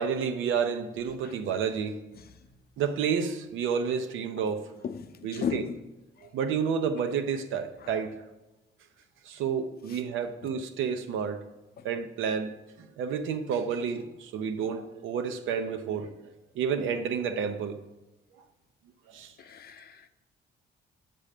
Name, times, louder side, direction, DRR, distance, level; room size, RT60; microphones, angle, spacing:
voice 1, 0.0-2.0 2.8-4.6 5.2-5.6 6.2-8.1 9.3-11.4 11.8-12.5 12.8-16.1 16.5-17.8 19.1-19.3, right 6 dB, 85° right, 0.8 m, -30 dB
voice 2, 4.8-5.8 7.8-8.0 9.9-10.0 11.8-11.9 19.4-20.0, left 7 dB, 50° left, 0.7 m, -36 dB
7.5 x 3.9 x 6.6 m
cardioid pair, 90°, 20 cm